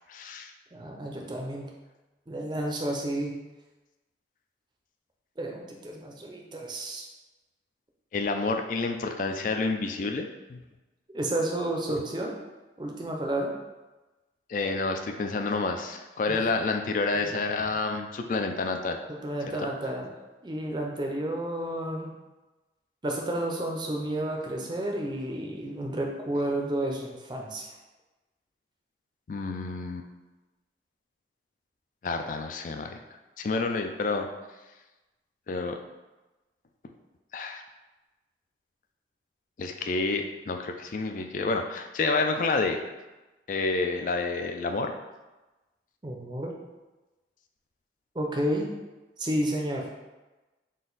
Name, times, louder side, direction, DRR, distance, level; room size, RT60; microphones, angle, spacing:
voice 1, 0.1-0.5 8.1-10.6 14.5-19.0 19.5-19.6 29.3-30.1 32.0-33.0 33.4-34.3 35.5-35.8 37.3-37.6 39.6-42.8 43.5-44.9, left 3 dB, 45° left, 5 dB, 0.3 m, -29 dB
voice 2, 0.7-1.7 2.3-3.3 5.4-7.1 11.1-12.4 12.8-13.5 16.3-16.5 17.2-17.3 19.1-20.1 20.4-22.1 23.0-27.7 46.0-46.5 48.1-48.7 49.2-49.9, right 1 dB, 25° right, 0 dB, 0.5 m, -31 dB
3.9 x 2.5 x 3.9 m, 1.1 s
head